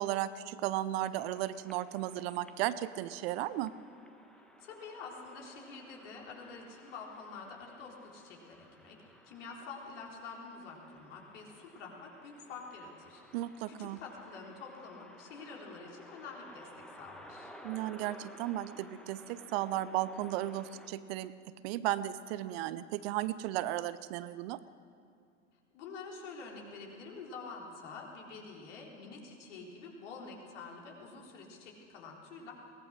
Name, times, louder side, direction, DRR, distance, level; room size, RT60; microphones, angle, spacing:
voice 1, 0.0-3.7 13.3-14.0 17.6-21.3 21.6-24.6, right 14 dB, 50° right, 15 dB, 0.8 m, -35 dB
sound 1, 1.1-20.9, equal, ahead, 1.5 m, -56 dB
voice 2, 4.4-13.2 13.7-17.5 25.7-32.5, left 4 dB, 60° left, -1 dB, 4.1 m, -47 dB
23.0 x 18.5 x 6.5 m, 2.3 s
figure-of-eight pair, 80°, 40 cm